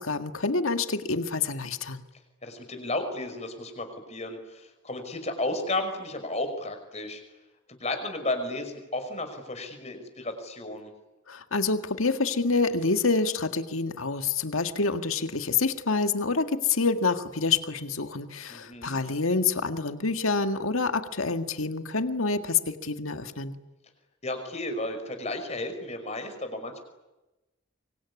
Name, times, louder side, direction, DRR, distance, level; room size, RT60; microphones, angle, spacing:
voice 1, 0.0-2.0 11.3-23.6, left 4 dB, 90° left, 8 dB, 1.9 m, -27 dB
voice 2, 2.4-7.2 7.7-10.9 18.5-19.0 24.2-26.8, left 2 dB, 30° left, 7 dB, 5.6 m, -33 dB
25.0 x 24.5 x 9.8 m, 1.0 s
head